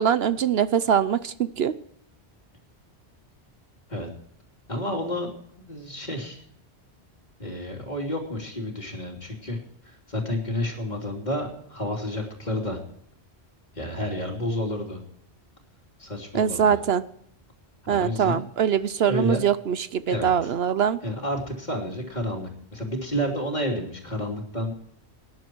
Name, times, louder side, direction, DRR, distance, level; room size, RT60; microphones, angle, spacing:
voice 1, 0.0-1.7 16.3-17.0 17.9-21.0, right 8 dB, 70° right, 14 dB, 0.9 m, -23 dB
voice 2, 4.7-5.3 5.6-6.4 7.4-9.6 9.8-12.8 13.7-15.0 16.0-16.8 17.8-18.4 19.1-19.4 20.0-20.5 21.0-24.7, left 1 dB, 40° left, 1 dB, 3.2 m, -30 dB
18.5 x 10.5 x 4.6 m, 0.68 s
omnidirectional pair, 1.1 m